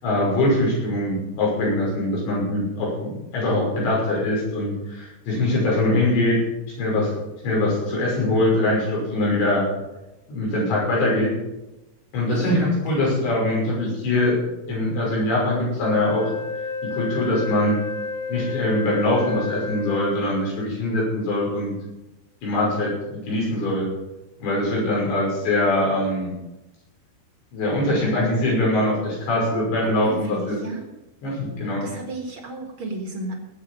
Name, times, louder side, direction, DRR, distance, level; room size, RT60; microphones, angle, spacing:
voice 1, 0.0-6.4 6.8-7.1 7.4-9.7 10.3-11.3 12.1-14.4 14.7-16.3 16.9-17.8 18.3-21.7 22.4-23.9 24.4-26.3 27.5-30.6 31.2-31.8, left 1 dB, 85° left, -4 dB, 8.1 m, -22 dB
voice 2, 12.3-13.1 29.5-30.9 31.8-33.4, right 2 dB, 60° right, 2 dB, 1.4 m, -34 dB
Wind instrument woodwind instrument, 15.8-20.5, left 3 dB, 50° left, 0.9 m, -31 dB
19.0 x 8.3 x 5.6 m, 0.98 s
omnidirectional pair, 5.0 m